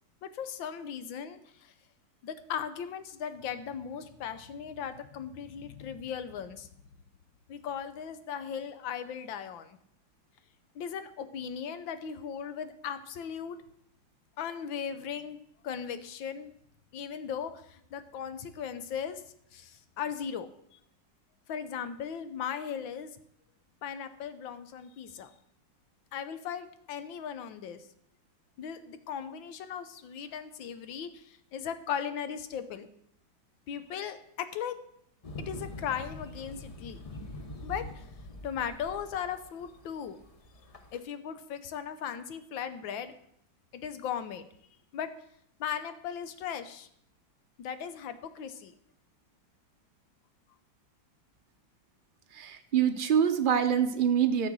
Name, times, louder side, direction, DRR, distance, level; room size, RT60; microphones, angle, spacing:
voice 1, 0.2-1.7 2.2-6.7 7.5-9.8 10.7-13.6 14.4-15.4 15.6-16.5 16.9-19.2 19.5-20.5 21.5-23.1 23.8-25.3 26.1-27.8 28.6-32.9 33.7-34.8 35.4-37.0 37.6-38.1 38.4-40.2 40.9-43.1 43.7-44.5 44.9-45.1 45.6-46.9 47.6-48.7, left 8 dB, 80° left, 11 dB, 1.6 m, -37 dB
sound 1, 35.2-41.0, left 1 dB, 50° left, 0.4 m, -44 dB
voice 2, 52.3-54.5, right 8 dB, 65° right, 7 dB, 0.5 m, -25 dB
13.0 x 6.8 x 6.2 m, 0.72 s
omnidirectional pair, 2.1 m